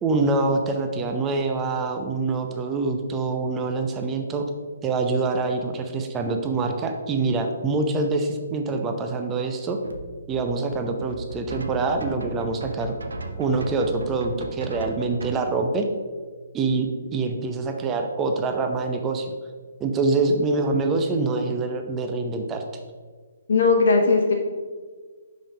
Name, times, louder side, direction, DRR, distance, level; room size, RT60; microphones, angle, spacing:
voice 1, 0.0-4.4 4.8-9.8 10.3-12.9 13.4-15.9 16.5-19.3 19.8-22.6, right 3 dB, 15° right, 4 dB, 0.7 m, -25 dB
sound 1, 9.8-15.3, right 2 dB, 70° right, 0.7 m, -35 dB
voice 2, 23.5-24.3, left 4 dB, 55° left, 1 dB, 1.2 m, -18 dB
5.8 x 5.2 x 4.8 m, 1.5 s
figure-of-eight pair, 130°, 0 cm